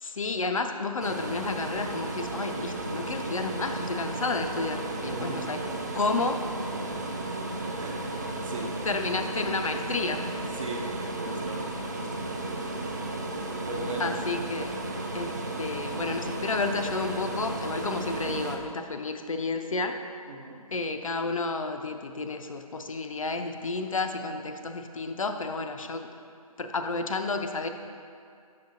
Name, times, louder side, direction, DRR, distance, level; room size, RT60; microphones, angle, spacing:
voice 1, 0.0-5.7 5.9-6.4 8.8-10.3 14.0-14.8 15.1-20.0 20.7-26.1 26.6-27.7, left 3 dB, 60° left, 6 dB, 0.4 m, -31 dB
sound 1, 1.0-18.6, right 2 dB, 30° right, 0.3 m, -34 dB
voice 2, 5.0-5.5 6.9-7.2 7.6-8.1 8.4-8.7 10.6-10.8 11.2-11.6 11.9-12.6 13.6-14.1 20.3-20.6, right 2 dB, 55° right, 0 dB, 0.9 m, -38 dB
6.8 x 5.7 x 2.6 m, 2.4 s
figure-of-eight pair, 145°, 19 cm